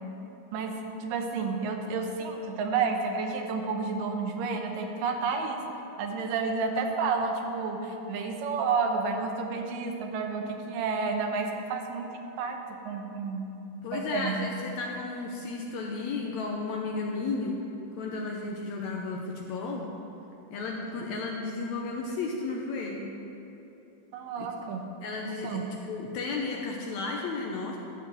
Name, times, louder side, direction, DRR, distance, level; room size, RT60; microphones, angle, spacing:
voice 1, 0.5-5.6 6.0-12.1 12.4-13.5 13.9-14.5 24.1-24.9 25.3-25.8, right 4 dB, 80° right, 3 dB, 2.5 m, -30 dB
voice 2, 13.8-17.6 18.0-19.9 20.5-23.1 24.4-24.5 25.0-25.6 25.9-27.8, left 3 dB, 75° left, -1 dB, 1.7 m, -33 dB
13.0 x 4.4 x 7.6 m, 2.9 s
omnidirectional pair, 3.9 m